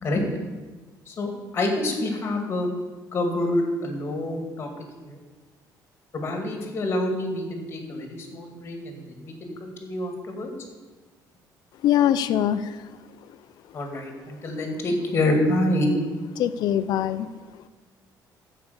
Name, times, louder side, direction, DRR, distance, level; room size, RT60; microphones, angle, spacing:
voice 1, 1.1-2.7 3.1-4.7 5.0-5.2 6.1-10.5 13.7-15.9, left 1 dB, 30° left, 4 dB, 2.1 m, -27 dB
voice 2, 11.8-12.8 16.4-17.3, left 10 dB, 60° left, 13 dB, 0.6 m, -22 dB
14.5 x 5.1 x 6.9 m, 1.3 s
cardioid pair, 170°, 8 cm